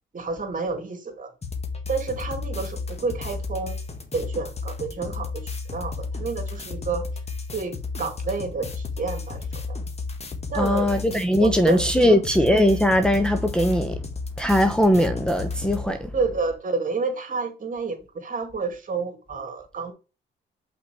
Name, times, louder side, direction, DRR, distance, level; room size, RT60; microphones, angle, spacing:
voice 1, 0.1-1.3 1.9-3.8 4.1-7.1 7.5-9.8 10.5-11.0 11.4-12.2 16.1-19.9, right 4 dB, 40° right, 2.2 m, -29 dB
sound 1, 1.4-15.8, left 4 dB, 30° left, 1.6 m, -33 dB
voice 2, 10.6-13.9 14.4-16.1, equal, 5° left, 0.8 m, -20 dB
5.8 x 4.4 x 4.7 m
cardioid pair, 90°, 20 cm